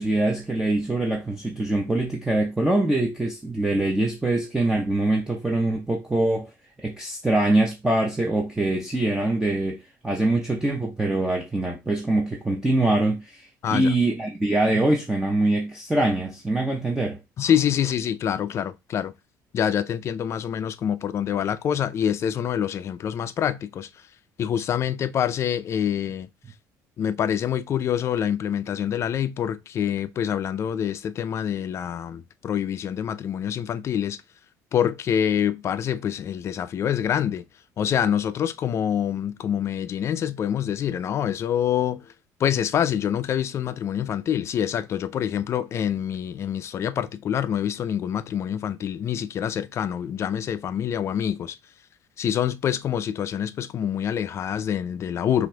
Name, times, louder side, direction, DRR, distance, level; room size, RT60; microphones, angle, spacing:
voice 1, 0.0-6.5 6.8-17.2, right 2 dB, 10° right, 0.7 m, -24 dB
voice 2, 13.6-13.9 17.4-19.1 19.5-23.9 24.4-26.3 27.0-34.2 34.7-37.4 37.8-42.1 42.4-51.6 52.2-55.5, left 9 dB, 40° left, 0.4 m, -26 dB
5.9 x 2.6 x 3.3 m
cardioid pair, 135°, 7 cm